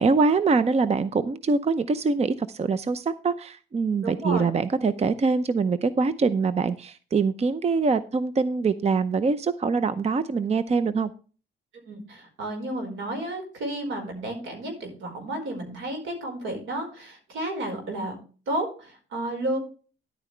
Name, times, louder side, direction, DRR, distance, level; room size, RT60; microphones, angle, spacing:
voice 1, 0.0-11.1, right 4 dB, 30° right, 14 dB, 0.6 m, -24 dB
voice 2, 4.0-4.5 11.8-18.2 18.5-19.6, right 1 dB, 80° right, 4 dB, 4.8 m, -32 dB
11.0 x 9.0 x 3.3 m, 0.37 s
cardioid pair, 90°, 20 cm